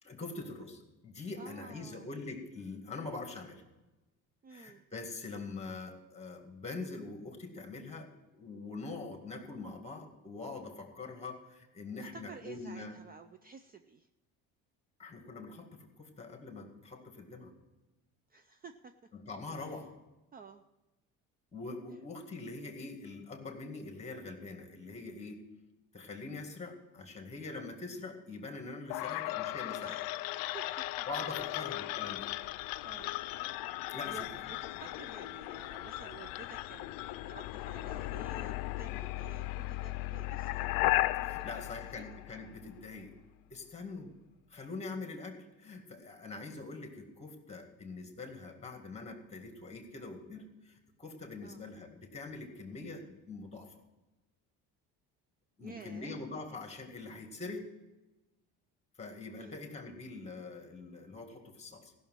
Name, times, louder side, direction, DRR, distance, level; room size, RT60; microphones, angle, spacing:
voice 1, 0.0-3.6 4.5-13.0 15.0-17.5 19.1-19.9 21.5-25.4 25.9-30.0 31.1-32.3 33.9-34.3 34.9-35.0 41.2-43.1 43.5-44.1 44.5-53.7 55.6-57.7 59.0-61.9, left 3 dB, 20° left, 4 dB, 2.1 m, -44 dB
voice 2, 1.4-2.1 4.4-4.8 12.0-14.1 18.3-18.9 19.6-19.8 20.3-20.6 28.9-29.3 29.8-31.1 31.3-31.6 32.8-33.2 34.0-40.8 41.2-42.0 51.4-51.6 55.6-56.2 59.3-59.7, right 5 dB, 25° right, 9 dB, 0.5 m, -52 dB
sound 1, 28.9-42.8, left 18 dB, 85° left, 0.5 m, -36 dB
15.0 x 6.4 x 7.5 m, 1.1 s
cardioid pair, 120°, 34 cm